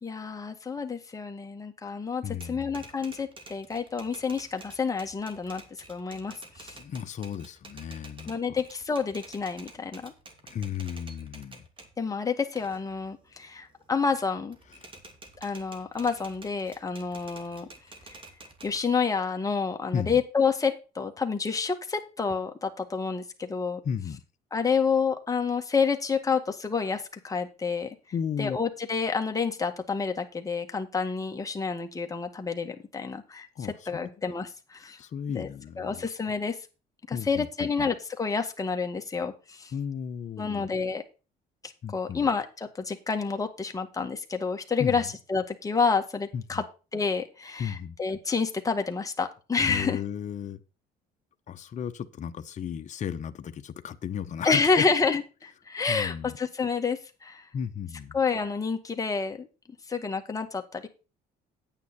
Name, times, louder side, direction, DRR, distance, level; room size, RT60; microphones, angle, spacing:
voice 1, 0.0-2.2 2.5-5.6 5.9-6.8 8.3-10.1 12.0-14.6 15.4-17.7 18.1-18.2 18.6-23.8 24.5-28.0 28.4-33.5 33.9-35.0 35.3-35.5 35.8-36.6 37.1-39.7 40.4-41.0 41.9-46.6 46.9-50.0 54.4-57.5 58.1-59.5 59.9-60.9, left 5 dB, 20° left, 1.8 m, -29 dB
voice 2, 2.2-2.9 6.8-8.3 10.4-11.6 14.8-14.9 19.9-20.2 23.8-24.2 28.1-28.6 33.6-34.1 34.8-36.1 37.1-37.9 39.7-40.7 41.8-42.3 44.8-45.1 46.3-46.6 47.6-47.9 49.7-50.6 51.5-54.8 55.9-56.4 57.5-58.2, left 8 dB, 45° left, 1.0 m, -34 dB
Typewriter, 2.3-12.0 12.4-14.2 14.5-18.8, right 2 dB, 30° right, 2.4 m, -50 dB
9.6 x 9.2 x 4.3 m
cardioid pair, 110°, 17 cm